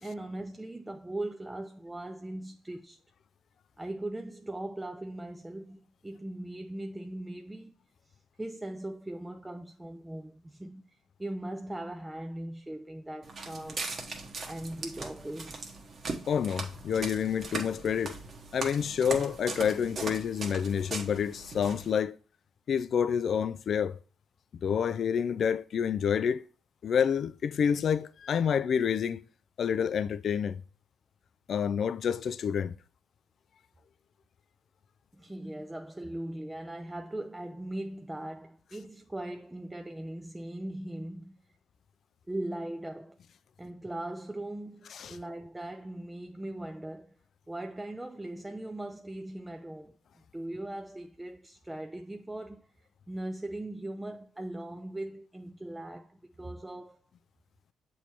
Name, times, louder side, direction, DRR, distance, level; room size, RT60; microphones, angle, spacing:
voice 1, 0.0-3.0 3.8-7.7 8.1-13.9 14.5-15.6 35.1-41.4 42.3-43.2 43.6-47.2 47.5-49.9 50.3-52.7 53.1-57.0, right 1 dB, 10° right, 0.4 m, -39 dB
Walk footsteps, 13.2-21.9, right 3 dB, 45° right, 1.1 m, -39 dB
voice 2, 16.3-18.2 18.5-22.2 22.7-24.0 24.6-26.4 26.8-29.2 29.6-30.6 31.5-32.7 44.9-45.2, left 7 dB, 55° left, 0.3 m, -28 dB
7.0 x 3.1 x 4.4 m
cardioid pair, 90°, 0 cm